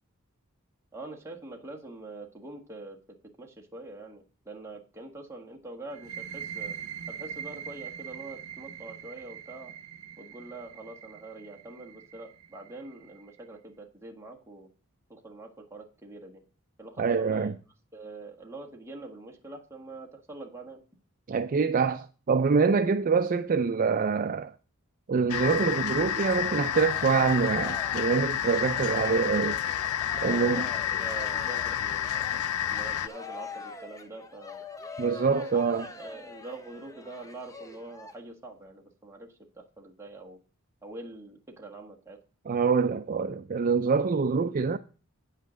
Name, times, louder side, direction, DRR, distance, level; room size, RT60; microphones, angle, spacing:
voice 1, 0.9-3.0 3.4-6.8 7.1-9.7 10.2-14.7 15.1-16.4 16.8-17.5 17.9-20.8 30.3-32.3 32.7-34.6 35.2-39.3 39.5-40.4 40.8-42.2, right 2 dB, 15° right, 1.5 m, -44 dB
sound 1, 5.9-13.4, right 8 dB, 75° right, 0.7 m, -42 dB
voice 2, 17.0-17.5 21.3-24.5 25.1-29.6 30.2-30.6 35.0-35.9 42.5-44.8, right 5 dB, 40° right, 0.4 m, -25 dB
sound 2, 25.3-33.1, left 10 dB, 75° left, 0.4 m, -30 dB
Cheering, 26.4-38.1, left 3 dB, 15° left, 0.7 m, -44 dB
9.2 x 5.7 x 6.2 m
head